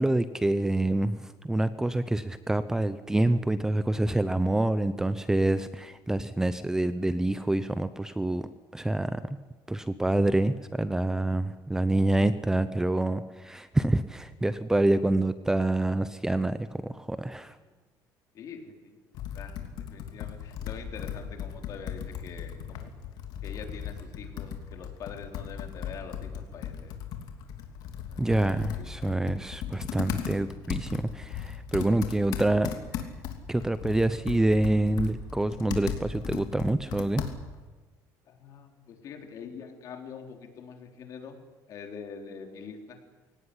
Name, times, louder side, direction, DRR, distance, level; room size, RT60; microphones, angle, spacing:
voice 1, 0.0-9.4 9.7-17.6 28.2-32.7 33.5-37.2, right 2 dB, 5° right, 13 dB, 0.7 m, -27 dB
voice 2, 18.3-19.0 19.3-22.9 23.4-27.0 28.0-28.9 38.3-41.4 41.7-43.0, left 6 dB, 50° left, 4 dB, 3.9 m, -44 dB
Computer keyboard, 19.1-37.7, left 8 dB, 65° left, 3.0 m, -37 dB
23.5 x 18.0 x 10.0 m, 1.2 s
cardioid pair, 150°, 7 cm